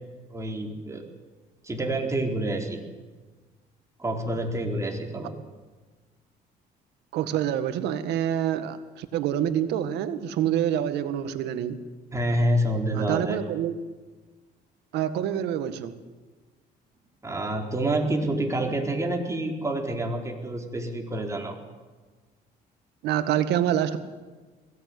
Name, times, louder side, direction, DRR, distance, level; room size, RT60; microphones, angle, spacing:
voice 1, 0.3-1.1 1.6-2.8 4.0-5.3 12.1-13.4 17.2-21.6, right 1 dB, 15° right, 2 dB, 4.1 m, -27 dB
voice 2, 7.1-11.8 12.9-13.7 14.9-16.0 23.0-24.0, right 10 dB, 85° right, 11 dB, 1.8 m, -26 dB
21.5 x 17.0 x 9.6 m, 1.3 s
cardioid pair, 110°, 17 cm